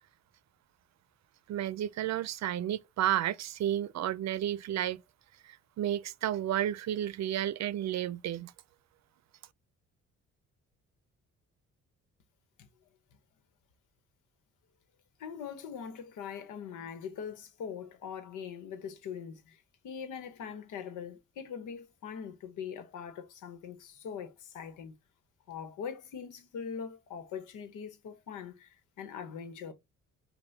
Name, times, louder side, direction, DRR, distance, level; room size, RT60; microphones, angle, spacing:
voice 1, 1.5-5.0 5.4-8.5, right 11 dB, 60° right, 0.5 m, -32 dB
voice 2, 15.2-25.0 25.5-29.7, left 7 dB, 80° left, 1.1 m, -42 dB
5.5 x 2.3 x 4.0 m
cardioid pair, 90°, 30 cm